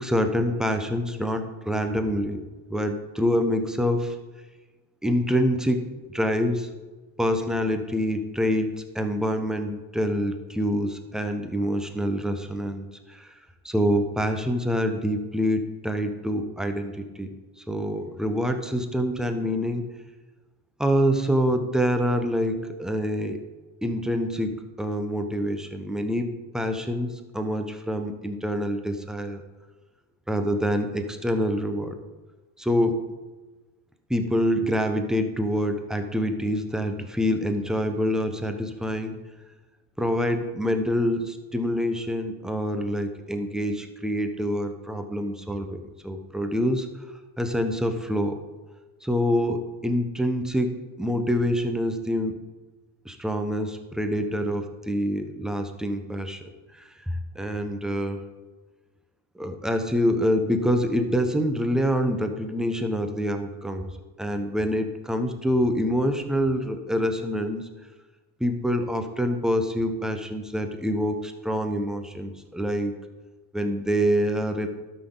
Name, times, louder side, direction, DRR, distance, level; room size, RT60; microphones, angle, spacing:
voice 1, 0.0-2.4 2.7-4.1 5.0-6.7 7.2-13.3 13.6-17.3 17.7-19.9 20.8-23.4 23.8-29.4 30.3-31.9 32.6-33.0 34.1-39.2 40.0-46.9 47.4-48.4 49.0-52.4 53.0-56.4 57.1-58.2 59.4-63.9 64.2-67.7 68.4-72.9 73.5-74.7, equal, ahead, 6 dB, 0.9 m, -26 dB
12.5 x 6.0 x 3.9 m, 1.2 s
supercardioid pair, 100°, 48 cm